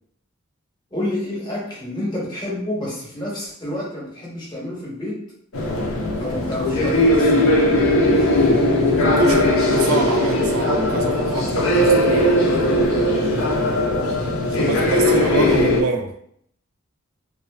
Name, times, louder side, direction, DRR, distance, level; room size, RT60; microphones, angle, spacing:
voice 1, 0.9-5.3 6.2-7.9 14.4-15.7, left 1 dB, 20° left, -5 dB, 0.8 m, -29 dB
sound 1, 5.5-15.8, left 1 dB, 70° left, 0.5 m, -18 dB
voice 2, 9.0-12.4 14.5-16.1, right 3 dB, 70° right, 4 dB, 0.4 m, -25 dB
2.4 x 2.4 x 2.2 m, 0.67 s
head